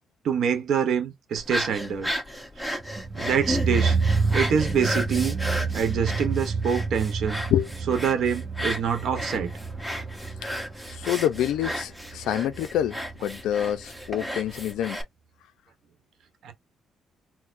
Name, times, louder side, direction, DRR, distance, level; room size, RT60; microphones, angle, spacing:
voice 1, 0.2-2.1 3.1-4.0 4.3-5.4 5.7-7.4 7.8-9.5 16.4-16.5, right 7 dB, 70° right, 0.9 m, -25 dB
sound 1, 1.4-15.0, equal, ahead, 1.1 m, -34 dB
sound 2, 2.8-13.8 14.1-14.2, right 4 dB, 35° right, 0.8 m, -29 dB
voice 2, 10.9-15.0, left 11 dB, 85° left, 0.3 m, -27 dB
4.3 x 2.0 x 2.5 m
cardioid pair, 90°, 0 cm